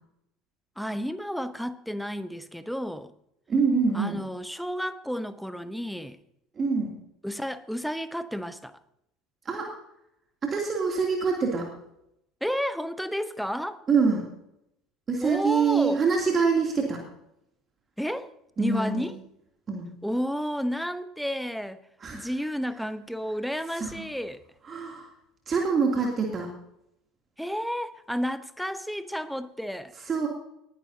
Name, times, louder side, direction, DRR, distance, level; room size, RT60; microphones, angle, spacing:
voice 1, 0.8-3.1 3.9-6.2 7.2-8.8 12.4-13.8 15.2-16.0 18.0-19.2 20.0-21.8 22.1-24.4 27.4-29.9, equal, ahead, 0.9 m, -31 dB
voice 2, 3.5-4.2 6.6-7.0 9.4-9.7 10.4-11.7 13.9-14.3 15.1-17.0 18.6-19.1 19.7-19.8 22.0-22.3 23.8-23.9 24.6-25.1 25.5-26.5 30.0-30.3, right 5 dB, 35° right, 2.8 m, -25 dB
19.5 x 11.0 x 2.8 m
hypercardioid pair, 70°, 0 cm